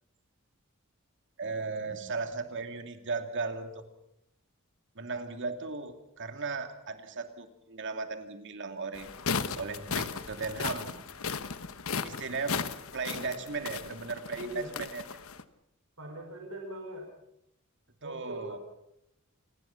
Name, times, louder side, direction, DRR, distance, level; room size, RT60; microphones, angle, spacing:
voice 1, 1.4-3.8 5.0-9.1 9.6-11.1 12.0-12.6 12.9-15.0 18.0-18.6, right 4 dB, 60° right, 7 dB, 2.5 m, -36 dB
sound 1, 8.9-15.4, left 5 dB, 70° left, 1.2 m, -36 dB
voice 2, 14.3-14.8 16.0-17.1 18.0-18.6, equal, 75° right, 3 dB, 5.7 m, -41 dB
28.0 x 20.0 x 5.9 m, 0.80 s
head